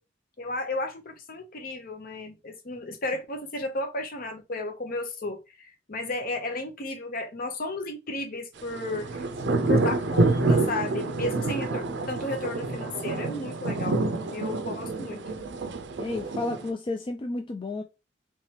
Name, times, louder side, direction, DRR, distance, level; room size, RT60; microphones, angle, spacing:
voice 1, 0.4-9.2 9.7-14.0 14.3-15.2, left 2 dB, 50° left, 0.8 m, -33 dB
sound 1, 8.6-16.7, right 3 dB, 65° right, 0.5 m, -27 dB
voice 2, 9.5-9.8 16.0-17.8, left 2 dB, 25° left, 0.3 m, -32 dB
3.3 x 3.2 x 2.9 m
head